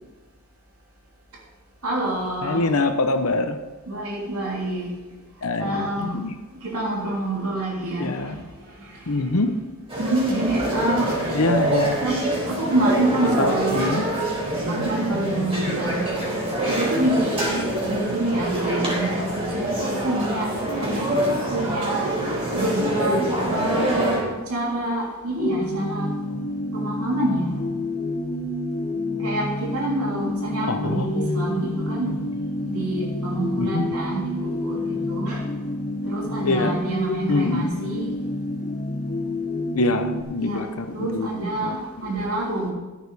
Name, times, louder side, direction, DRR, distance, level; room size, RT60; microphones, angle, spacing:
voice 1, 1.8-2.7 3.9-4.9 5.6-6.2 6.6-8.4 8.8-9.3 10.0-11.4 11.7-12.2 12.5-14.0 14.7-16.1 16.7-17.4 17.8-20.5 20.8-22.0 22.5-23.2 23.5-26.1 26.7-27.6 29.2-32.1 32.6-35.5 36.0-38.1 40.4-40.6 40.9-42.7, right 1 dB, 80° right, -3 dB, 3.2 m, -27 dB
voice 2, 2.4-3.6 5.4-6.3 8.0-8.4 9.1-9.5 11.3-12.0 13.4-14.0 30.7-31.6 32.1-32.2 33.6-33.8 36.4-36.8 37.3-37.7 39.7-41.8, left 2 dB, 75° left, 7 dB, 0.8 m, -25 dB
sound 1, 9.9-24.2, right 1 dB, 25° right, 4.2 m, -25 dB
sound 2, 25.4-40.2, left 1 dB, 35° left, 0.8 m, -28 dB
14.0 x 9.0 x 4.1 m, 1.2 s
head